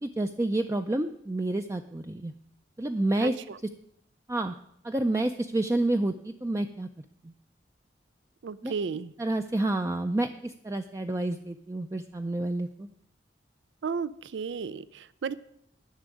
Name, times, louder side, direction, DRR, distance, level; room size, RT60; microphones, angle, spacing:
voice 1, 0.0-2.3 2.8-3.4 4.3-4.5 4.8-6.9 8.6-8.7 9.2-12.9, right 2 dB, 15° right, 6 dB, 0.4 m, -29 dB
voice 2, 3.2-3.6 8.4-9.1 13.8-15.3, right 5 dB, 85° right, 17 dB, 0.4 m, -33 dB
11.0 x 6.2 x 9.1 m, 0.72 s
head